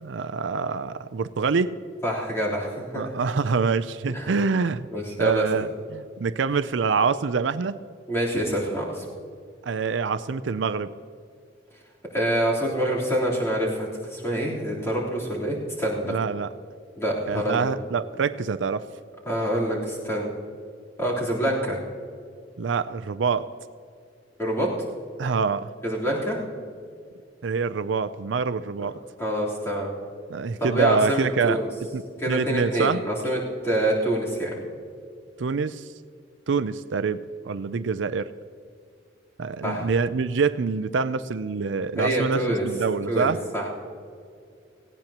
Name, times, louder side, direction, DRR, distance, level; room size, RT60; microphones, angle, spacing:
voice 1, 0.0-1.7 2.9-4.9 5.2-7.8 9.6-10.9 16.1-16.5 17.3-18.9 22.6-23.5 25.2-25.7 27.4-29.0 30.3-31.6 31.9-33.0 35.4-35.9 36.5-38.3 39.4-43.4, right 5 dB, 70° right, 12 dB, 0.5 m, -25 dB
voice 2, 2.0-3.1 4.1-4.4 4.9-5.4 8.1-9.0 12.1-16.2 17.0-17.7 19.2-20.3 21.0-21.8 24.4-24.7 25.8-26.4 29.2-29.9 30.6-31.7 32.2-34.6 39.6-39.9 42.0-42.7 43.1-43.7, right 1 dB, 15° left, -5 dB, 3.6 m, -26 dB
18.5 x 16.5 x 3.0 m, 2.3 s
head